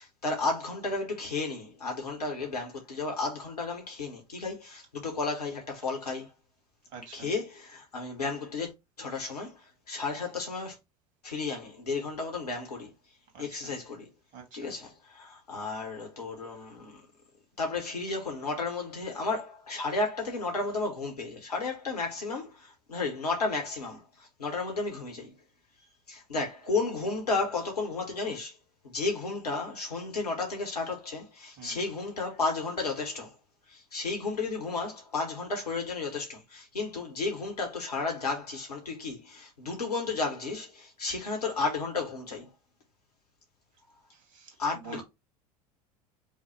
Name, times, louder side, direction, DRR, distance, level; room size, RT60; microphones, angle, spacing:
voice 1, 0.0-6.3 7.1-8.7 9.0-9.6 9.9-10.8 11.2-12.9 13.4-14.1 14.5-17.0 17.6-25.3 26.1-28.5 28.8-33.3 33.7-42.5 44.6-45.0, left 3 dB, 80° left, 1.2 m, -33 dB
voice 2, 6.9-7.3 13.3-13.7 14.3-14.7 31.6-31.8 44.1-45.0, right 4 dB, 45° right, 1.9 m, -46 dB
5.4 x 2.2 x 3.2 m
figure-of-eight pair, 75°, 20 cm